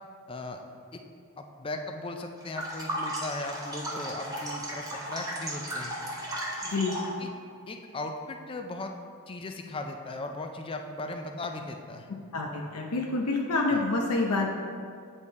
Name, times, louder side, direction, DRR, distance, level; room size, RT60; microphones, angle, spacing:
voice 1, 0.3-0.6 0.9-1.0 1.4-6.0 7.2-7.3 7.7-8.9 9.3-12.1 13.7-13.8, left 2 dB, 25° left, 5 dB, 0.4 m, -37 dB
sound 1, 2.4-7.2, right 1 dB, 15° right, 0.9 m, -35 dB
voice 2, 6.6-7.0 12.3-14.5, left 3 dB, 85° left, 0 dB, 0.6 m, -27 dB
8.5 x 3.6 x 4.1 m, 2.3 s
head